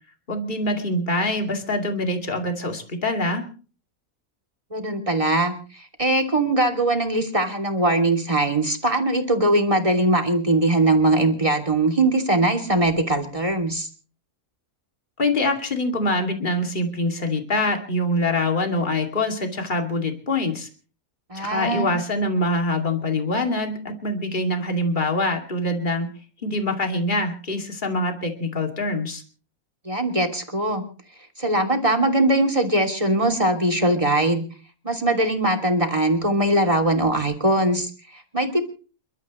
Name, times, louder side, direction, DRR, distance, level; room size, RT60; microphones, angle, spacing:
voice 1, 0.3-3.4 15.2-20.7 21.3-26.1 26.4-29.2, left 1 dB, 35° left, 3 dB, 2.7 m, -24 dB
voice 2, 4.7-13.9 21.3-21.9 29.8-30.8 31.4-34.4 34.8-38.6, right 1 dB, 20° right, 6 dB, 3.0 m, -21 dB
30.0 x 13.0 x 3.2 m, 0.38 s
omnidirectional pair, 1.5 m